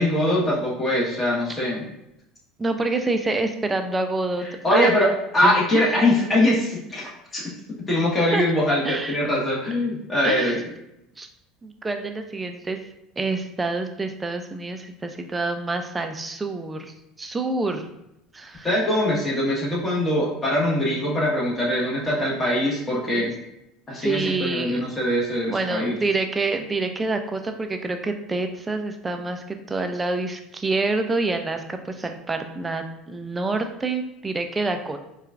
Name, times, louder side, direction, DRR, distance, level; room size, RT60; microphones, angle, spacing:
voice 1, 0.0-1.9 4.4-7.4 7.9-10.6 18.6-23.3 23.9-25.9, left 1 dB, 25° left, -5 dB, 1.3 m, -22 dB
voice 2, 2.6-4.4 4.7-4.9 5.4-5.5 8.3-8.4 8.8-9.2 10.2-10.6 11.2-11.3 11.6-12.8 13.2-17.9 18.3-18.7 23.1-23.3 24.0-24.8 25.5-35.0, right 3 dB, 20° right, 6 dB, 0.4 m, -27 dB
4.4 x 2.3 x 2.4 m, 0.85 s
hypercardioid pair, 75°, 0 cm